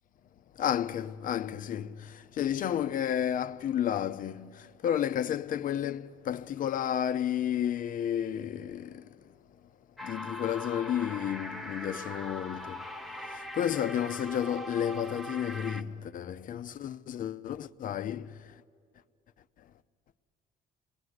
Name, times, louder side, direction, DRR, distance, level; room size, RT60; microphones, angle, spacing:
voice 1, 0.6-1.9 2.4-4.5 4.8-9.0 10.0-12.8 13.6-18.3, left 10 dB, 55° left, 0.7 m, -31 dB
sound 1, 10.0-15.8, left 1 dB, ahead, 0.8 m, -41 dB
29.5 x 20.0 x 9.7 m
cardioid pair, 110°, 17 cm